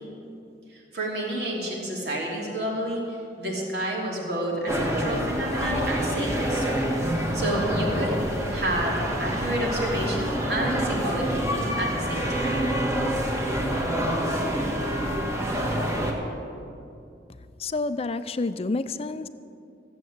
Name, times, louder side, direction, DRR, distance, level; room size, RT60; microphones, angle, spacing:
voice 1, 0.7-8.2 8.5-12.5, right 1 dB, 70° right, -3 dB, 3.1 m, -30 dB
sound 1, 4.7-16.1, equal, 15° right, 1.5 m, -27 dB
voice 2, 17.6-19.3, left 3 dB, 35° left, 13 dB, 0.4 m, -29 dB
15.0 x 7.7 x 8.0 m, 2.5 s
head